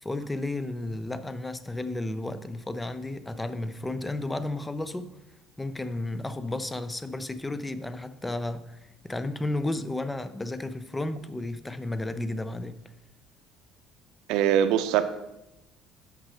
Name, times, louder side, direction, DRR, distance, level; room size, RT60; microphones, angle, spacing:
voice 1, 0.0-5.1 5.6-8.8 9.0-12.8, left 2 dB, 10° left, 12 dB, 0.4 m, -33 dB
voice 2, 14.3-15.0, right 10 dB, 70° right, 9 dB, 0.6 m, -22 dB
6.4 x 5.8 x 5.6 m, 0.91 s
cardioid pair, 170°, 0 cm